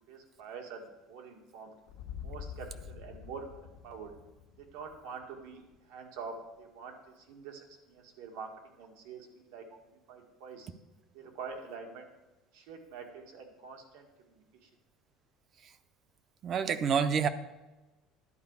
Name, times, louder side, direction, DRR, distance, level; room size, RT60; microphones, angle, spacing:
voice 1, 0.1-1.7 2.2-4.1 4.6-5.6 5.9-10.7 11.1-12.1 12.5-14.7, right 5 dB, 85° right, 3 dB, 1.9 m, -46 dB
sound 1, 1.9-5.9, left 8 dB, 90° left, 1.2 m, -47 dB
voice 2, 16.4-17.3, right 7 dB, 30° right, 12 dB, 0.5 m, -27 dB
11.0 x 5.0 x 8.2 m, 1.1 s
cardioid pair, 170°, 0 cm